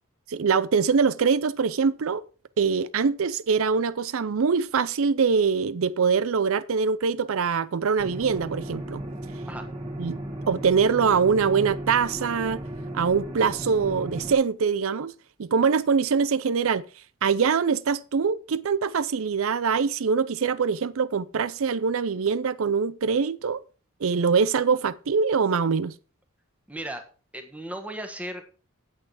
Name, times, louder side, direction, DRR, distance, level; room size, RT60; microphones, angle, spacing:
voice 1, 0.3-2.2 2.6-9.0 10.0-10.2 10.5-12.6 12.9-15.1 15.4-16.8 17.2-23.6 24.0-25.9, right 5 dB, 65° right, 0.5 m, -23 dB
sound 1, 8.0-14.3, right 1 dB, 25° right, 1.7 m, -35 dB
voice 2, 26.7-27.0 27.3-28.5, right 1 dB, 5° right, 1.4 m, -35 dB
8.7 x 8.6 x 4.8 m
head